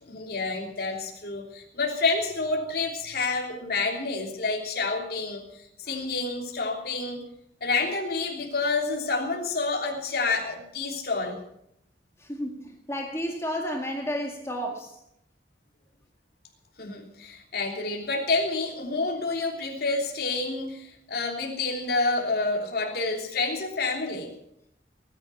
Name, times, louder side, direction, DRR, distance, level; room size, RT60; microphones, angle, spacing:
voice 1, 0.0-5.4 5.8-7.2 7.6-11.4 16.8-24.3, left 3 dB, 60° left, 1 dB, 3.2 m, -28 dB
voice 2, 12.2-15.0, equal, 15° left, 1 dB, 2.0 m, -32 dB
19.5 x 10.5 x 7.0 m, 0.75 s
head